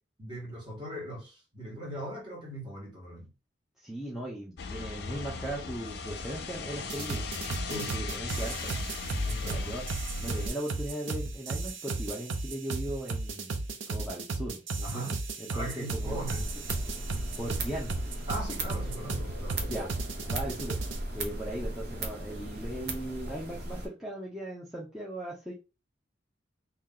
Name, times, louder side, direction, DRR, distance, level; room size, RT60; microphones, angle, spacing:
voice 1, 0.2-3.3 7.6-8.1 9.3-9.6 14.8-15.2 15.5-16.5 18.3-19.8 20.1-20.4, right 1 dB, 25° right, 1.7 m, -39 dB
voice 2, 3.8-7.2 7.7-8.7 9.4-9.8 10.2-13.6 13.9-16.2 17.4-17.9 19.7-19.9 20.3-20.8 21.1-25.5, right 1 dB, ahead, 0.7 m, -38 dB
sound 1, 4.6-10.5, left 4 dB, 55° left, 0.5 m, -37 dB
sound 2, 6.9-21.0, right 3 dB, 80° right, 0.6 m, -35 dB
sound 3, 15.9-23.9, right 1 dB, 55° right, 0.8 m, -37 dB
2.9 x 2.8 x 3.8 m
head